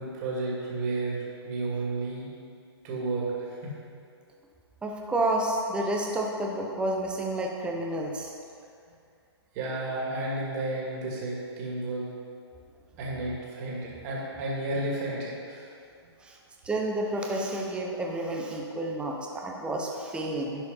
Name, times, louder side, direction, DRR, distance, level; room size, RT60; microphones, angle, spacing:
voice 1, 0.0-2.3 2.8-3.2 3.6-3.7 9.5-12.0 13.0-15.7 19.7-19.8, right 2 dB, 35° right, -4 dB, 2.4 m, -32 dB
voice 2, 4.8-8.3 16.2-16.4 16.6-20.6, right 1 dB, 5° right, -1 dB, 0.8 m, -30 dB
11.0 x 4.8 x 5.6 m, 2.4 s
hypercardioid pair, 140°, 14 cm